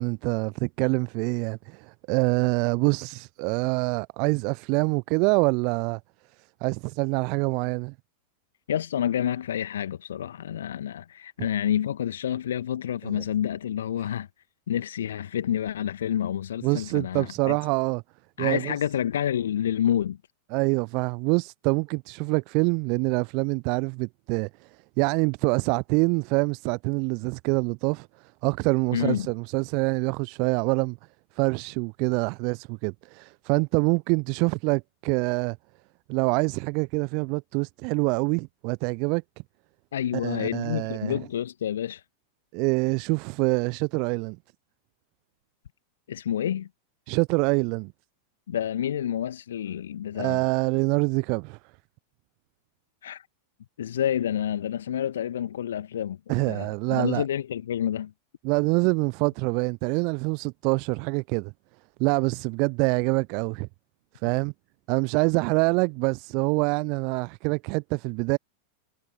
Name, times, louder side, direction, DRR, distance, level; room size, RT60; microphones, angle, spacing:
voice 1, 0.0-6.0 6.6-7.9 13.1-13.2 16.6-18.0 18.4-18.7 20.5-24.7 25.0-28.1 28.4-31.0 31.4-35.6 36.1-39.2 40.2-41.1 42.5-44.4 47.1-47.9 50.1-51.6 56.3-57.2 58.4-61.5 62.0-63.7 64.2-64.5 64.9-68.4, right 33 dB, 45° right, 0.7 m, -25 dB
voice 2, 8.7-14.3 14.7-17.6 18.4-20.2 28.9-29.3 39.9-42.0 46.1-46.7 48.5-50.4 53.0-53.3 53.8-56.2 56.5-58.1, left 10 dB, 65° left, 1.5 m, -28 dB
figure-of-eight pair, 90°, 0 cm